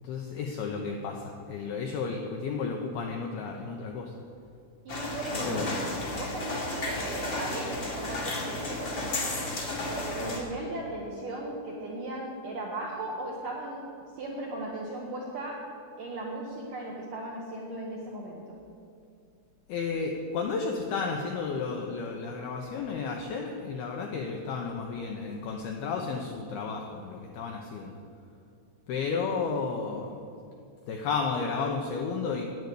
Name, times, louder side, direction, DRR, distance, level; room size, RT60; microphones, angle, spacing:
voice 1, 0.0-4.1 5.3-5.7 19.7-28.0 28.9-30.1 30.9-32.4, left 5 dB, 80° left, 2 dB, 2.2 m, -32 dB
sound 1, 4.9-10.4, left 2 dB, 55° left, 1.2 m, -33 dB
voice 2, 4.9-5.7 6.1-9.2 9.9-13.8 14.2-15.6 16.0-18.4, right 2 dB, 70° right, -3 dB, 2.0 m, -37 dB
11.0 x 9.4 x 8.3 m, 2.5 s
omnidirectional pair, 5.6 m